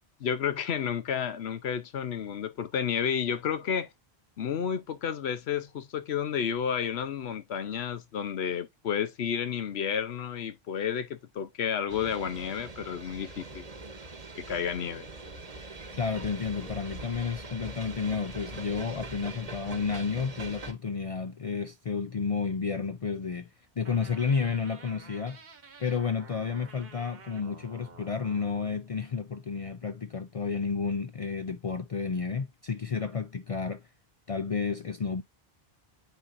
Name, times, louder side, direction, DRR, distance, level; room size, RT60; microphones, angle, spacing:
voice 1, 0.2-3.9 4.4-13.7 14.4-15.1, left 7 dB, 85° left, 1.0 m, -31 dB
sound 1, 11.9-20.7, right 3 dB, 40° right, 1.1 m, -42 dB
voice 2, 16.0-23.5 23.8-25.4 25.8-33.8 34.3-35.2, left 5 dB, 45° left, 0.4 m, -31 dB
sound 2, 23.9-28.8, right 5 dB, 70° right, 1.3 m, -51 dB
9.0 x 4.1 x 2.6 m
omnidirectional pair, 1.0 m